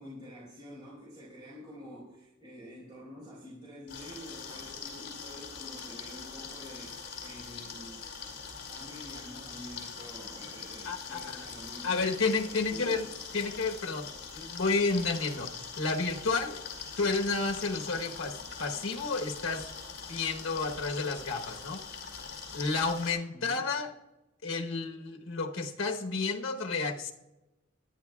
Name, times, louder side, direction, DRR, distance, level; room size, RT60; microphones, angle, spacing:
voice 1, 0.0-8.0 8.7-12.2 12.4-13.1 23.3-23.7, equal, 25° right, -8 dB, 4.6 m, -48 dB
sound 1, 3.9-23.1, left 5 dB, 60° left, 4.4 m, -43 dB
voice 2, 10.8-11.4 11.8-13.1 13.3-15.5 15.8-16.6 17.0-19.7 20.1-21.8 22.5-23.9 24.4-27.1, left 4 dB, 85° left, 3 dB, 1.1 m, -31 dB
21.0 x 11.5 x 2.3 m, 0.99 s
head